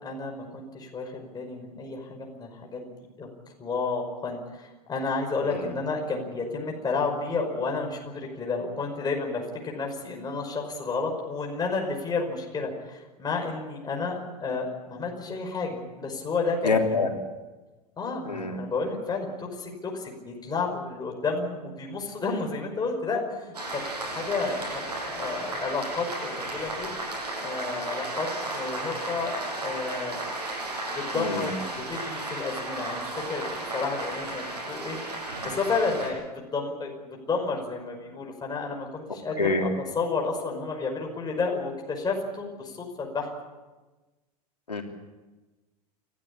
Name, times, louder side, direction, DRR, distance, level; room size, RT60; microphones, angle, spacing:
voice 1, 0.0-3.3 3.6-17.1 18.0-26.9 27.4-28.3 28.5-30.2 30.9-35.0 35.4-43.3, left 4 dB, 20° left, 1 dB, 5.4 m, -31 dB
voice 2, 16.6-17.1 18.3-18.5 31.2-31.4 39.4-39.6 44.7-44.8, left 4 dB, 85° left, 3 dB, 3.3 m, -25 dB
sound 1, 23.5-36.1, right 2 dB, 80° right, 8.0 m, -34 dB
29.5 x 14.0 x 8.6 m, 1.2 s
figure-of-eight pair, 90°, 20 cm